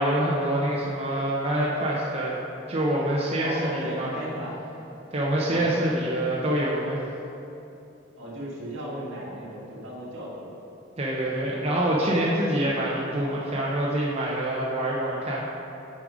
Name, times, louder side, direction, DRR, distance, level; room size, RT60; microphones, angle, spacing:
voice 1, 0.0-2.4 2.7-4.1 5.1-7.0 11.0-15.6, right 1 dB, 30° right, -5 dB, 0.8 m, -26 dB
voice 2, 3.4-4.6 5.4-6.0 8.2-10.5, right 1 dB, 75° right, -6 dB, 2.0 m, -35 dB
8.4 x 5.1 x 5.0 m, 2.8 s
head